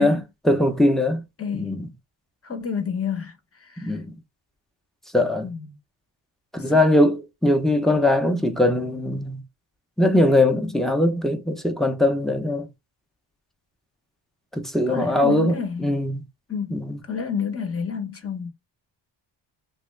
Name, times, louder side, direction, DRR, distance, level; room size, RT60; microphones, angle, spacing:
voice 1, 0.0-1.2 1.5-1.9 3.8-4.2 5.1-5.5 6.5-9.4 10.0-12.7 14.5-16.2 16.7-17.0, left 1 dB, ahead, 0.7 m, -21 dB
voice 2, 1.4-1.8 2.5-3.3 3.8-3.9 5.4-5.6 6.7-6.8 14.9-15.9 16.5-18.5, left 6 dB, 30° left, 0.9 m, -29 dB
3.6 x 2.3 x 3.1 m
cardioid pair, 95°, 46 cm